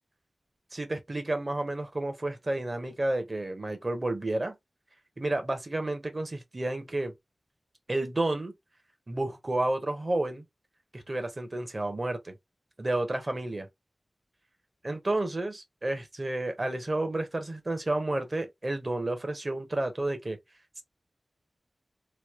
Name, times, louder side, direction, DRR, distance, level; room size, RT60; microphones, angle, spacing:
voice 1, 0.7-4.6 5.2-7.1 7.9-8.5 9.1-10.4 10.9-12.4 12.8-13.7 14.8-20.4, right 2 dB, 35° right, 0.9 m, -31 dB
3.1 x 2.2 x 3.1 m
wide cardioid pair, 85°, 0 cm